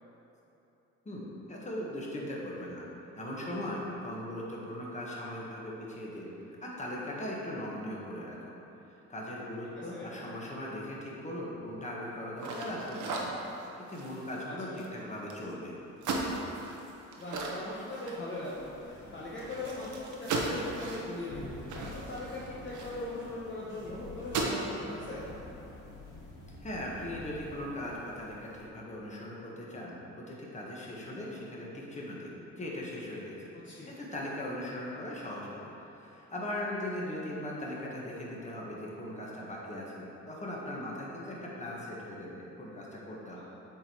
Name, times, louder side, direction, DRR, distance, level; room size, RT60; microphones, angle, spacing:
voice 1, 1.0-2.9 3.2-8.5 9.1-15.7 26.6-43.4, left 1 dB, 25° left, -4 dB, 1.6 m, -39 dB
voice 2, 9.8-10.1 14.4-14.8 17.2-21.6 21.9-25.3 33.6-33.9, left 2 dB, 40° left, -7 dB, 1.2 m, -40 dB
sound 1, 12.4-15.5 16.0-18.7 19.0-19.1 19.4-23.3 23.7-23.9 24.2-24.7, right 3 dB, 75° right, 1.0 m, -37 dB
sound 2, 17.3-28.7, left 2 dB, 80° left, 1.6 m, -49 dB
7.6 x 4.5 x 4.7 m, 3.0 s
cardioid pair, 90°, 30 cm